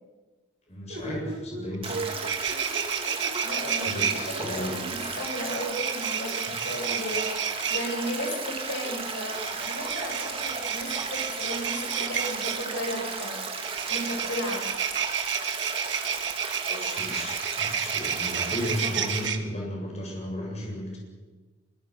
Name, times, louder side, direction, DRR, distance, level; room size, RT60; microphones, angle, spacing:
voice 1, 0.7-2.0 3.8-4.7 16.7-21.0, left 1 dB, 35° left, -1 dB, 7.6 m, -34 dB
sound 1, 0.9-5.0, right 2 dB, 90° right, 4.6 m, -39 dB
sound 2, 1.7-1.8 2.1-4.1 5.2-7.8 9.2-12.6 13.6-19.4, right 8 dB, 70° right, 1.8 m, -31 dB
Stream, 1.8-19.3, right 4 dB, 30° right, 2.9 m, -34 dB
voice 2, 3.4-4.2 4.5-13.4 13.9-14.6, equal, 65° left, 0 dB, 7.2 m, -34 dB
25.0 x 24.5 x 6.4 m, 1.2 s
head